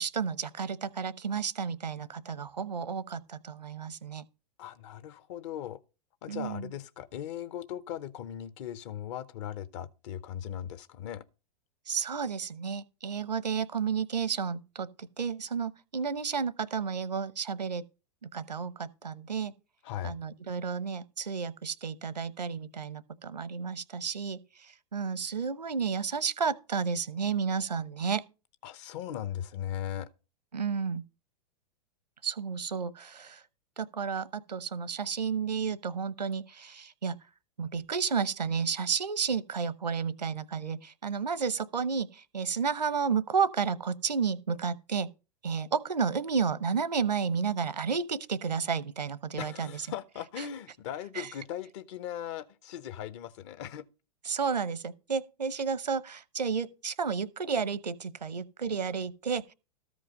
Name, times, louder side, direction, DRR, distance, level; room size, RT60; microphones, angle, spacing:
voice 1, 0.0-4.2 6.3-6.7 11.9-17.8 18.2-19.5 20.0-28.2 30.5-31.0 32.2-33.4 33.8-37.2 37.6-45.1 45.4-49.8 51.1-51.3 54.3-59.5, right 6 dB, 80° right, 0.8 m, -32 dB
voice 2, 4.6-5.8 6.2-11.2 19.8-20.2 28.6-30.1 49.4-53.8, left 10 dB, 45° left, 0.9 m, -38 dB
13.5 x 5.0 x 5.3 m
figure-of-eight pair, 100°, 21 cm